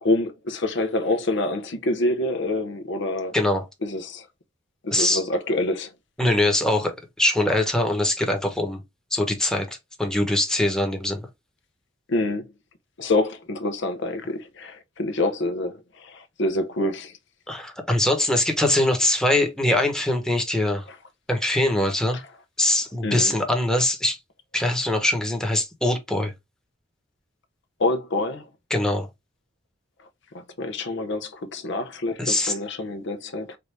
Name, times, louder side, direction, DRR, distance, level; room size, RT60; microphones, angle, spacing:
voice 1, 0.0-3.4 3.8-4.3 4.8-5.9 12.1-12.5 13.0-17.1 20.9-21.0 22.1-22.2 23.0-23.3 27.8-28.5 30.3-33.6, left 2 dB, 65° left, 0.7 m, -26 dB
voice 2, 3.3-3.6 4.9-5.2 6.2-6.9 7.2-8.8 9.1-9.7 10.0-11.2 17.5-20.8 21.3-22.2 22.6-24.2 24.5-26.3 28.7-29.1 32.2-32.5, left 1 dB, 5° left, 1.0 m, -22 dB
4.6 x 2.6 x 3.2 m
head